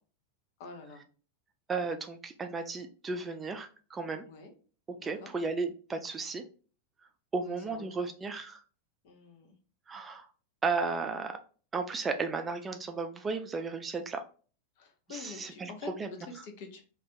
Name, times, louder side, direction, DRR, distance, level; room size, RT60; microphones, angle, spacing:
voice 1, 0.6-1.0 4.3-4.5 5.0-5.3 7.4-8.1 9.0-9.6 14.8-16.8, left 4 dB, 50° left, 4 dB, 0.7 m, -47 dB
voice 2, 1.7-4.3 4.9-6.4 7.3-8.6 9.9-10.3 10.6-11.4 11.7-14.2 15.1-15.7 16.0-16.1, right 4 dB, 20° right, 6 dB, 0.3 m, -34 dB
2.5 x 2.3 x 3.5 m, 0.39 s
figure-of-eight pair, 90°, 0 cm